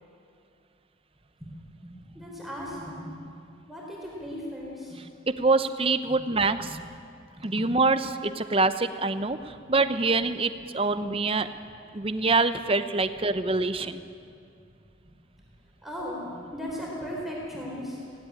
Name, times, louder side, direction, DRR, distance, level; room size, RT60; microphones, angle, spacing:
voice 1, 2.0-3.3 3.7-5.0 7.4-7.5 15.8-18.0, equal, ahead, -4 dB, 4.1 m, -37 dB
voice 2, 5.3-6.8 7.4-11.5 11.9-14.0, right 3 dB, 30° right, 11 dB, 0.7 m, -25 dB
17.0 x 17.0 x 9.9 m, 2.4 s
head